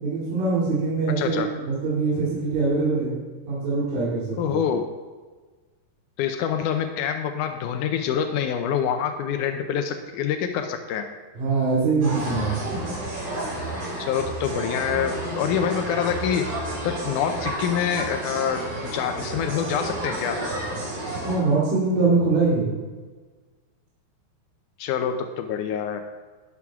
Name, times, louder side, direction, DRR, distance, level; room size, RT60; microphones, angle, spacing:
voice 1, 0.0-3.1 3.5-4.6 11.3-12.6 21.2-22.7, right 3 dB, 60° right, -8 dB, 4.3 m, -23 dB
voice 2, 1.2-1.5 4.4-4.8 6.2-11.1 14.0-16.5 16.8-20.4 24.8-26.0, left 8 dB, 90° left, 5 dB, 1.8 m, -26 dB
sound 1, 12.0-21.4, right 1 dB, 90° right, 6.1 m, -31 dB
12.0 x 11.0 x 3.7 m, 1.3 s
omnidirectional pair, 4.6 m